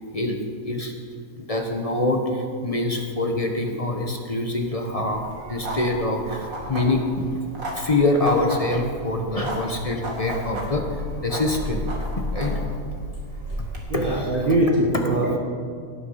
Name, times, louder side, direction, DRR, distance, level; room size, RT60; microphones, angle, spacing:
voice 1, 1.4-7.4 7.7-11.9 12.3-12.6 13.9-14.5, left 2 dB, 30° left, 3 dB, 1.0 m, -25 dB
sound 1, 5.1-13.8, equal, 75° right, 2.5 m, -32 dB
voice 2, 13.9-15.4, right 1 dB, 40° right, -2 dB, 1.2 m, -21 dB
18.0 x 6.9 x 5.7 m, 2.1 s
omnidirectional pair, 1.5 m